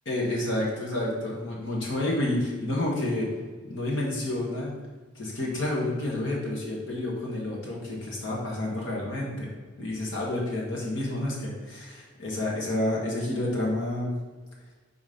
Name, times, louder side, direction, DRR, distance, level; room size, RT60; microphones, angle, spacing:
voice 1, 0.1-3.3 3.6-4.8 5.2-9.5 9.8-14.1, left 1 dB, 75° left, -4 dB, 1.8 m, -29 dB
4.7 x 4.2 x 5.4 m, 1.4 s
head